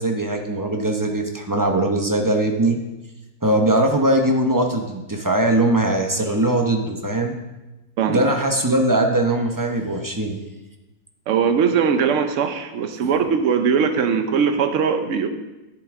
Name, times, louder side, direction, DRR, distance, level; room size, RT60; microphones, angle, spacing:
voice 1, 0.0-2.8 3.4-7.3 8.1-10.4 13.0-13.1, right 1 dB, 20° right, 3 dB, 0.6 m, -20 dB
voice 2, 8.0-8.3 11.3-15.3, right 6 dB, 65° right, 7 dB, 1.1 m, -20 dB
10.5 x 8.3 x 3.6 m, 1.0 s
omnidirectional pair, 1.5 m